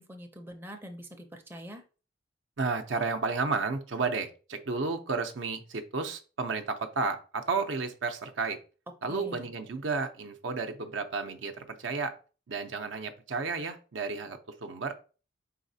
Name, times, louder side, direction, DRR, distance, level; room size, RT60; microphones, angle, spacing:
voice 1, 0.0-1.8 9.1-9.5, equal, 10° right, 0.5 m, -44 dB
voice 2, 2.6-8.6 9.0-12.2 12.5-14.9, right 4 dB, 70° right, 0.6 m, -32 dB
4.8 x 4.1 x 2.7 m
head